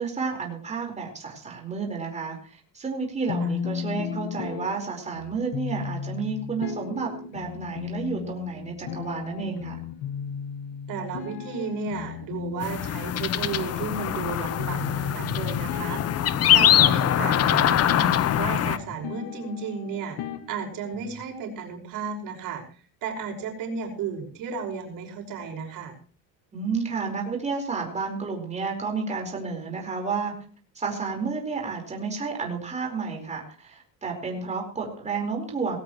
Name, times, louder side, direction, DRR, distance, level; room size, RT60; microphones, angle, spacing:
voice 1, 0.0-9.7 26.5-30.3 30.7-35.8, right 4 dB, 20° right, 1 dB, 4.7 m, -31 dB
sound 1, 3.3-21.3, left 7 dB, 85° left, 2.0 m, -35 dB
voice 2, 10.9-16.2 16.5-20.2 20.5-22.6 23.0-25.9, right 5 dB, 65° right, 1 dB, 5.6 m, -33 dB
sound 2, 12.6-18.8, left 11 dB, 45° left, 0.9 m, -23 dB
19.5 x 17.0 x 3.2 m, 0.41 s
cardioid pair, 145°, 35 cm